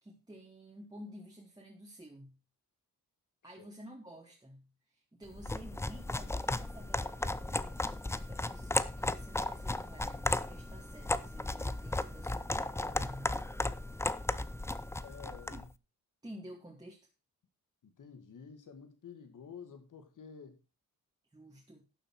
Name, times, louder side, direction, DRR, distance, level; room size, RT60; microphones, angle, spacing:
voice 1, 0.0-2.4 3.4-13.4 15.5-15.7 16.2-17.0 21.3-21.8, equal, 10° right, 2.2 m, -51 dB
sound 1, 5.3-15.7, left 2 dB, 10° left, 0.5 m, -35 dB
sound 2, 5.6-15.6, right 3 dB, 30° right, 1.5 m, -60 dB
voice 2, 15.0-15.7 17.8-20.6, left 6 dB, 60° left, 2.3 m, -50 dB
11.5 x 7.3 x 4.6 m
cardioid pair, 115°, 35 cm